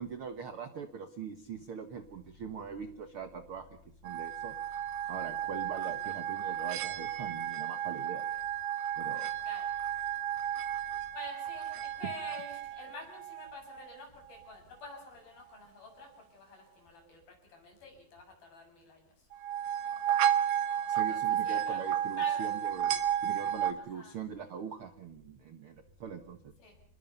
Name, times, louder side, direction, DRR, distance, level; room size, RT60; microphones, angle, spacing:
voice 1, 0.0-4.5 5.1-8.2 9.0-9.3 20.9-26.5, right 6 dB, 60° right, 8 dB, 1.5 m, -42 dB
sound 1, 4.1-13.9 19.3-23.7, right 10 dB, 90° right, 3.3 m, -33 dB
voice 2, 11.1-11.7 12.0-17.2 17.5-19.0 20.9-21.8 22.2-22.4 23.8-24.1 26.6-26.7, left 3 dB, 75° left, 2 dB, 9.1 m, -48 dB
28.5 x 20.5 x 5.6 m, 0.64 s
omnidirectional pair, 4.3 m